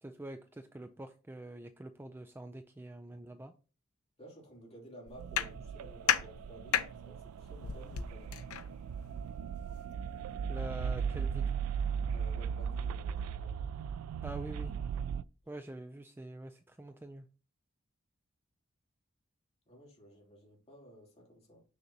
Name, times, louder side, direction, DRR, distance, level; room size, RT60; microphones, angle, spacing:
voice 1, 0.0-3.5 10.5-11.5 14.2-14.7 15.5-17.3, right 1 dB, 10° right, 0.3 m, -45 dB
voice 2, 4.2-8.4 12.1-13.7 19.7-21.6, right 1 dB, 30° left, 3.0 m, -54 dB
sound 1, 5.1-11.3, left 8 dB, 85° left, 0.7 m, -37 dB
sound 2, 5.2-15.2, right 7 dB, 90° right, 0.3 m, -37 dB
7.1 x 6.6 x 2.8 m
head